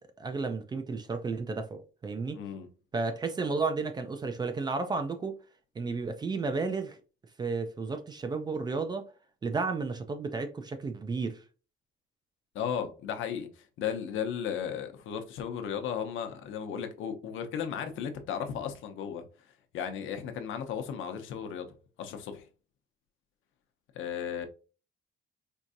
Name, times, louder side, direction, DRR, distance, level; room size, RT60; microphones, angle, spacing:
voice 1, 0.2-2.4 2.9-5.4 5.8-7.0 7.4-9.1 9.4-11.4, right 4 dB, 20° right, 0.4 m, -32 dB
voice 2, 2.3-2.7 12.5-19.2 19.7-21.7 22.0-22.4 23.9-24.5, left 8 dB, 75° left, 0.8 m, -35 dB
4.5 x 2.6 x 2.5 m
cardioid pair, 175°, 21 cm